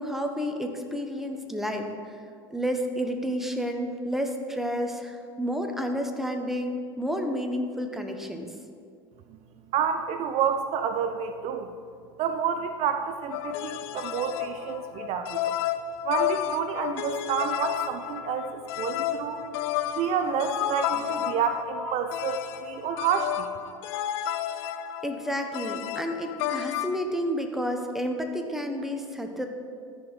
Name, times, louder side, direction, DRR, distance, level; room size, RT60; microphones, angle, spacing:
voice 1, 0.0-2.2 2.5-8.5 25.0-29.5, equal, ahead, 4 dB, 1.0 m, -30 dB
voice 2, 9.7-11.7 12.2-15.5 16.0-19.4 19.9-23.5, right 7 dB, 55° right, 8 dB, 0.6 m, -29 dB
sound 1, 13.3-27.0, left 11 dB, 75° left, 0.4 m, -32 dB
14.0 x 5.0 x 4.1 m, 2.2 s
hypercardioid pair, 85°, 13 cm